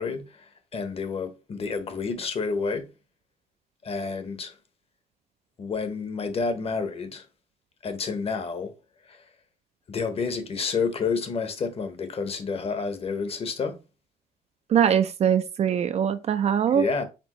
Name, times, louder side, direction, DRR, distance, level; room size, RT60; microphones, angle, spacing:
voice 1, 0.0-2.9 3.8-4.6 5.6-7.3 7.8-8.7 9.1-9.2 9.9-13.8 16.7-17.0, left 5 dB, 35° left, 0.9 m, -29 dB
voice 2, 14.7-16.9, right 8 dB, 40° right, 0.4 m, -22 dB
4.4 x 3.5 x 3.0 m
cardioid pair, 110°, 17 cm